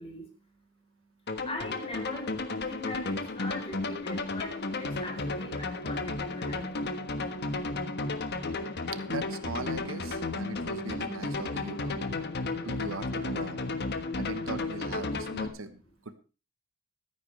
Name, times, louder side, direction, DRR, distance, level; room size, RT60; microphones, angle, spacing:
voice 1, 0.0-7.8 14.0-14.2, left 2 dB, 30° left, 2 dB, 4.0 m, -43 dB
sound 1, 1.3-15.5, left 3 dB, 55° left, 1.4 m, -33 dB
voice 2, 9.1-12.0 12.6-13.6 14.2-16.1, right 3 dB, 75° right, 11 dB, 1.2 m, -40 dB
15.0 x 13.5 x 3.3 m, 0.34 s
head